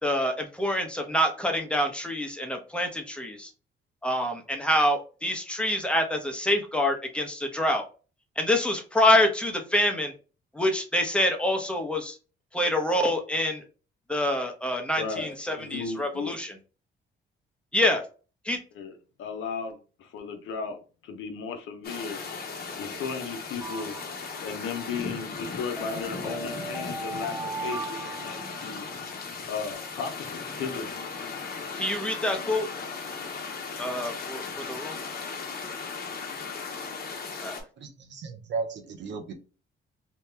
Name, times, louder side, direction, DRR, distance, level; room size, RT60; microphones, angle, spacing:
voice 1, 0.0-3.5 4.0-7.8 8.4-10.1 10.5-12.2 12.5-13.6 14.1-16.5 17.7-18.0 18.4-18.6 31.8-32.7 33.8-34.4 34.7-35.0 37.4-37.6, left 1 dB, 5° left, 0.8 m, -26 dB
voice 2, 15.0-16.4 18.7-18.9 19.2-22.2 22.8-23.9 24.4-28.9 29.4-31.0, left 5 dB, 80° left, 0.7 m, -35 dB
sound 1, 21.8-37.6, left 5 dB, 50° left, 0.9 m, -37 dB
sound 2, 23.6-24.7 25.8-29.0, right 4 dB, 10° right, 0.3 m, -38 dB
voice 3, 37.8-39.3, right 4 dB, 65° right, 0.7 m, -35 dB
2.9 x 2.2 x 3.3 m
cardioid pair, 90°, 20 cm